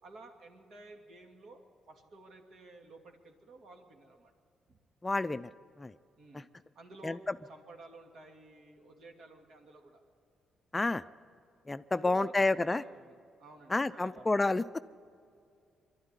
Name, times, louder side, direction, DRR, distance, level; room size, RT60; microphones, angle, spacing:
voice 1, 0.0-4.3 4.7-4.8 6.2-6.5 6.7-7.2 7.4-10.0 11.9-14.3, right 2 dB, 65° right, 3 dB, 2.6 m, -53 dB
voice 2, 5.0-5.5 5.8-5.9 7.0-7.2 10.7-11.0 11.7-12.8 13.7-14.6, left 2 dB, 20° left, 13 dB, 0.4 m, -29 dB
23.5 x 12.0 x 9.7 m, 2.5 s
cardioid pair, 90°, 0 cm